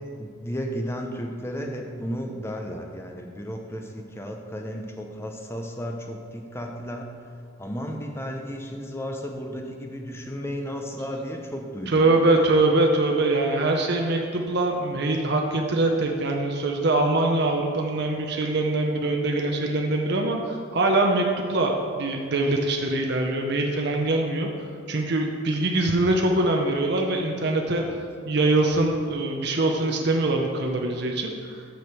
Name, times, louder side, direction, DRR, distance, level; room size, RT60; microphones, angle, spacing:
voice 1, 0.2-7.1 7.6-12.5 27.8-28.0, equal, 10° left, 2 dB, 0.7 m, -34 dB
voice 2, 11.9-24.5 24.9-27.8 28.3-31.6, right 2 dB, 50° right, 2 dB, 0.7 m, -23 dB
7.8 x 4.9 x 6.9 m, 2.2 s
head